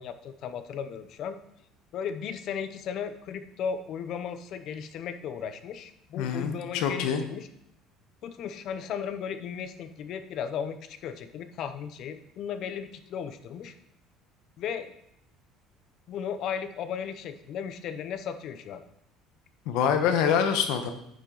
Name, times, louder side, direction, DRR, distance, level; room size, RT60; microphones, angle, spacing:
voice 1, 0.0-1.4 1.9-7.5 8.2-13.7 14.6-14.9 16.1-18.8, left 7 dB, 40° left, 10 dB, 0.7 m, -35 dB
voice 2, 6.2-7.2 19.7-20.9, left 7 dB, 65° left, 7 dB, 1.1 m, -25 dB
9.5 x 7.2 x 4.0 m, 0.76 s
cardioid pair, 175°, 0 cm